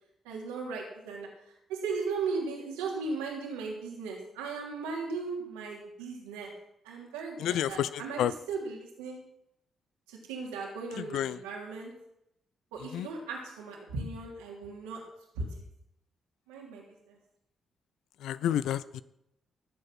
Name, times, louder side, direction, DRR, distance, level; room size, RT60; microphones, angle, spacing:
voice 1, 0.2-6.5 6.8-9.2 10.1-11.9 12.7-15.0 15.3-15.6 16.5-17.2, right 4 dB, 80° right, -1 dB, 3.3 m, -37 dB
voice 2, 7.4-7.9 8.2-8.3 11.1-11.4 12.9-13.1 18.2-19.0, left 11 dB, 70° left, 16 dB, 0.6 m, -29 dB
18.0 x 8.0 x 6.1 m, 0.80 s
hypercardioid pair, 40°, 0 cm